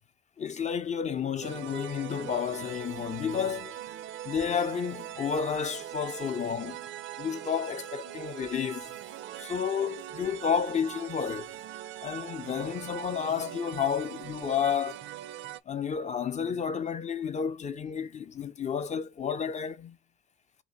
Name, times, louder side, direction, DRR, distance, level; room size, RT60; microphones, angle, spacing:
voice 1, 0.4-3.8 4.2-6.8 7.2-8.9 9.4-11.5 12.0-15.0 15.7-20.0, left 7 dB, 35° left, 0.5 m, -31 dB
sound 1, 1.4-15.6, right 12 dB, 70° right, 0.4 m, -41 dB
3.5 x 2.7 x 3.8 m
cardioid pair, 90°, 20 cm